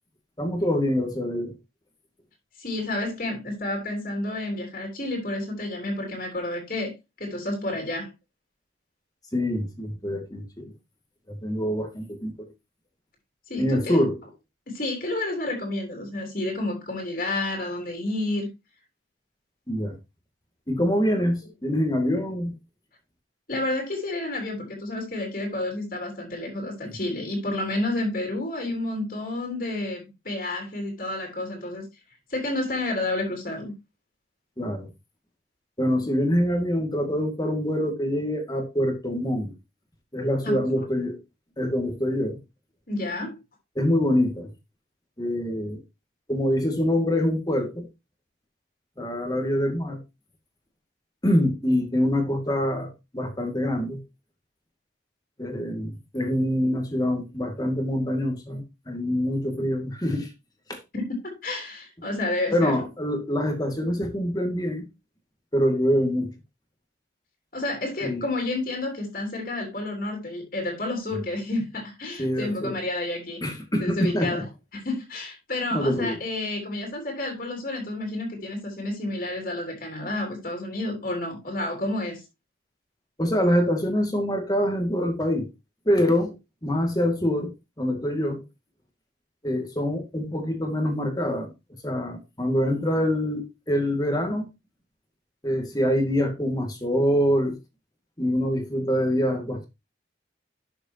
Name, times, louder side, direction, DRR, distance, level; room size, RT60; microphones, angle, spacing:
voice 1, 0.4-1.5 9.3-10.7 11.3-12.3 13.6-14.2 19.7-19.9 20.7-22.5 26.8-26.9 34.6-34.9 35.8-39.5 40.1-41.2 41.6-42.4 43.8-44.5 45.2-45.8 46.3-47.9 49.0-50.0 51.2-54.0 55.4-60.3 60.7-60.8 62.5-64.9 65.5-66.3 68.0-68.2 72.2-72.7 73.4-74.4 75.7-76.2 83.2-85.5 85.9-86.3 86.6-87.5 87.8-88.4 89.4-91.5 91.8-94.5 95.4-97.6 98.2-99.7, equal, 20° left, 2.1 m, -25 dB
voice 2, 2.6-8.1 13.5-14.0 14.7-18.5 23.5-31.8 32.3-33.7 40.4-40.7 42.9-43.4 60.9-62.7 67.5-73.4 73.8-74.4 74.7-82.2, left 2 dB, 45° left, 3.4 m, -30 dB
12.0 x 6.8 x 2.9 m
head